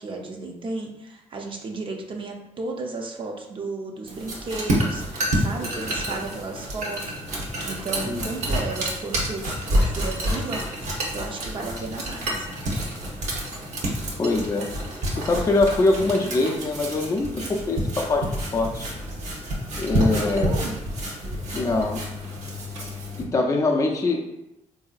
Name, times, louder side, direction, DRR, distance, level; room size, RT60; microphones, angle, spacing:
voice 1, 0.0-9.5 9.8-10.6 11.1-12.5 19.9-20.8, right 3 dB, 40° right, 1 dB, 0.6 m, -34 dB
sound 1, 4.1-23.2, equal, 65° right, 0.9 m, -28 dB
voice 2, 14.2-14.7 15.2-18.9 19.7-20.6 21.5-22.0 23.2-24.2, left 2 dB, 25° left, 0 dB, 0.4 m, -23 dB
3.7 x 2.7 x 2.4 m, 0.89 s
cardioid pair, 100°, 13 cm